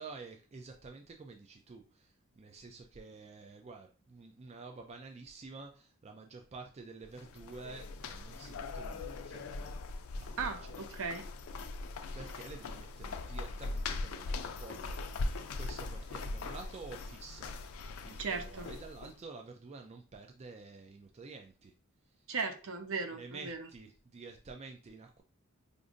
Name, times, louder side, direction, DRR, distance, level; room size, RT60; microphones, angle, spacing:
voice 1, 0.0-9.7 10.2-10.9 12.1-15.0 15.5-17.6 18.0-21.7 23.1-25.2, right 4 dB, 30° right, 4 dB, 0.4 m, -49 dB
sound 1, 7.0-19.2, left 3 dB, 70° left, 0.4 m, -40 dB
voice 2, 10.4-11.3 18.2-18.7 22.3-23.7, right 4 dB, 65° right, 6 dB, 0.7 m, -37 dB
4.9 x 2.6 x 2.5 m, 0.36 s
head